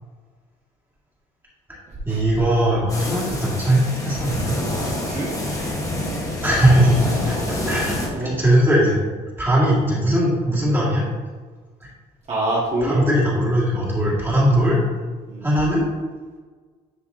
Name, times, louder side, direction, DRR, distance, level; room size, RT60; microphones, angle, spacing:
voice 1, 2.0-4.6 5.7-5.9 6.4-7.3 7.7-9.0 9.4-11.0 11.8-11.9 12.8-14.8 15.4-15.9, right 1 dB, 15° right, -7 dB, 2.1 m, -19 dB
sound 1, 2.9-8.1, left 1 dB, 20° left, 1.6 m, -27 dB
voice 2, 5.1-5.7 7.9-8.3 12.3-13.1 15.3-15.5, right 1 dB, 40° right, -7 dB, 2.0 m, -26 dB
10.0 x 3.4 x 3.8 m, 1.5 s
cardioid pair, 110°, 17 cm